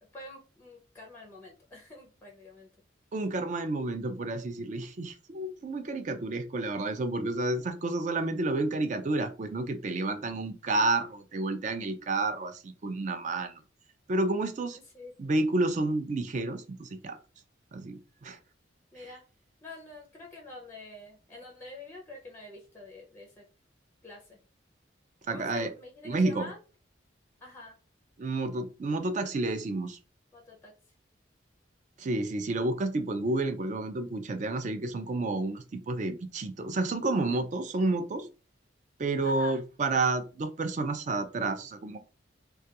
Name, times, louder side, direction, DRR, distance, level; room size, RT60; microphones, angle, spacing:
voice 1, 0.1-2.7 14.9-15.1 18.9-19.2 19.6-23.4 24.0-24.4 25.3-26.6 27.4-27.8 30.3-30.7 39.2-39.6, left 2 dB, 10° left, -1 dB, 0.5 m, -47 dB
voice 2, 3.1-13.5 14.1-14.8 15.2-17.2 17.7-18.4 19.0-19.1 25.3-25.7 26.1-26.5 28.2-30.0 32.0-38.3 39.0-42.0, right 2 dB, 40° right, 8 dB, 0.4 m, -30 dB
2.3 x 2.2 x 2.8 m, 0.33 s
head